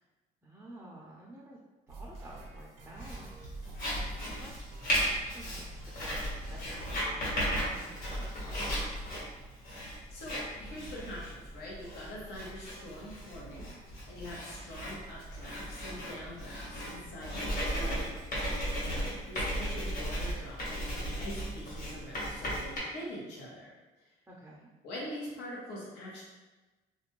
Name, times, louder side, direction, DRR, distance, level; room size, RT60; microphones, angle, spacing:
voice 1, 0.4-1.6 1.9-3.3 3.8-4.6 5.0-8.8 24.3-24.7, right 1 dB, 10° right, -4 dB, 0.5 m, -50 dB
sound 1, 1.9-6.9, right 2 dB, 65° right, 0.7 m, -48 dB
Writing, 3.0-22.8, equal, 50° left, 1.3 m, -36 dB
voice 2, 10.1-13.7 13.9-18.2 18.5-23.7 24.8-26.2, equal, 85° left, -5 dB, 0.9 m, -44 dB
2.5 x 2.2 x 3.0 m, 1.2 s
cardioid pair, 110°, 17 cm